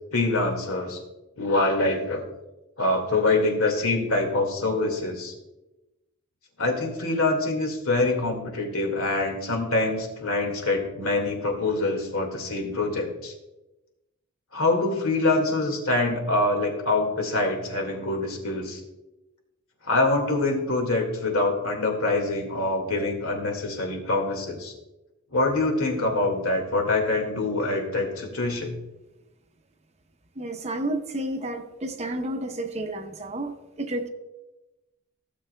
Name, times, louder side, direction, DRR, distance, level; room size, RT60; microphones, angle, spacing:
voice 1, 0.1-1.0 1.4-2.2 2.8-5.3 6.6-13.3 14.5-18.8 19.8-24.7 25.3-28.7, left 2 dB, 80° left, 2 dB, 1.9 m, -25 dB
voice 2, 30.4-33.5 33.8-34.1, right 1 dB, 30° right, 6 dB, 0.7 m, -31 dB
16.0 x 7.1 x 2.2 m, 1.0 s
head